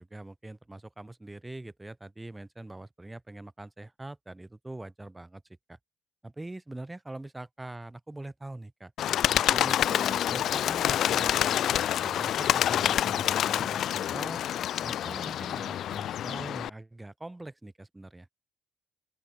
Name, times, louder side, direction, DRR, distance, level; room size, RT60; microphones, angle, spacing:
voice 1, 0.0-5.4 5.7-5.8 6.2-8.9 9.3-14.4 14.8-18.3, right 2 dB, 15° right, 2.1 m, -43 dB
Bird, 9.0-16.7, left 11 dB, 70° left, 0.3 m, -27 dB
open air
cardioid pair, 90°, 0 cm